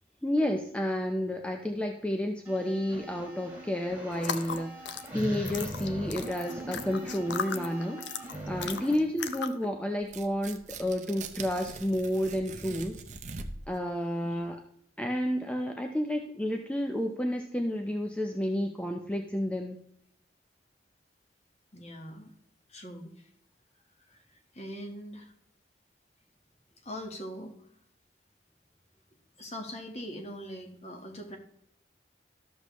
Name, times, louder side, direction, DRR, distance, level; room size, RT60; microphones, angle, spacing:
voice 1, 0.2-8.0 8.5-13.0 13.7-14.6 15.0-19.8, equal, 5° left, 3 dB, 0.5 m, -31 dB
sound 1, 2.4-8.9, right 1 dB, 10° right, 1.7 m, -41 dB
sound 2, 4.1-9.7, left 6 dB, 75° left, 0.7 m, -38 dB
Tearing, 10.0-13.8, right 4 dB, 40° right, 0.7 m, -42 dB
voice 2, 21.7-22.3 22.7-23.3 24.0-25.3 26.8-27.5 29.4-31.4, equal, 35° left, 3 dB, 1.3 m, -42 dB
12.5 x 6.8 x 3.0 m, 0.70 s
head